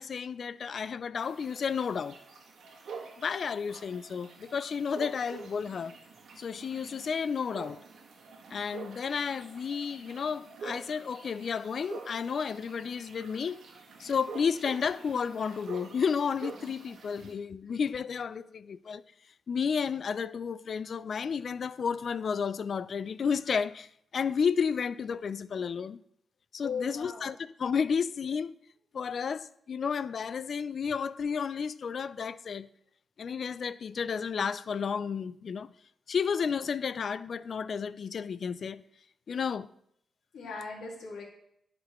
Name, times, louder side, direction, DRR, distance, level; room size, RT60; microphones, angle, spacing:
voice 1, 0.0-2.2 3.2-6.0 6.4-7.8 8.5-13.6 14.0-19.0 19.5-26.0 26.5-28.6 28.9-32.7 33.2-35.7 36.1-38.8 39.3-39.7, left 6 dB, 60° left, 0.3 m, -32 dB
sound 1, 1.2-17.3, right 4 dB, 80° right, 1.5 m, -47 dB
voice 2, 26.6-27.3 40.3-41.2, left 5 dB, 85° left, 1.9 m, -38 dB
12.0 x 5.0 x 3.1 m
cardioid pair, 85°, 0 cm